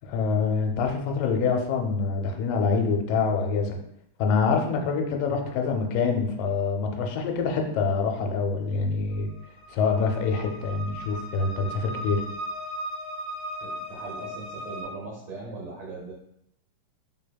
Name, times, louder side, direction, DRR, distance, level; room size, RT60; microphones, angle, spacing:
voice 1, 0.0-3.8 4.2-9.3 9.7-12.2, left 5 dB, 85° left, 3 dB, 2.2 m, -25 dB
sound 1, 9.1-14.8, right 1 dB, 65° left, 1.7 m, -37 dB
voice 2, 13.6-16.1, right 3 dB, 75° right, -3 dB, 1.6 m, -39 dB
4.4 x 3.4 x 2.2 m, 0.76 s
omnidirectional pair, 3.8 m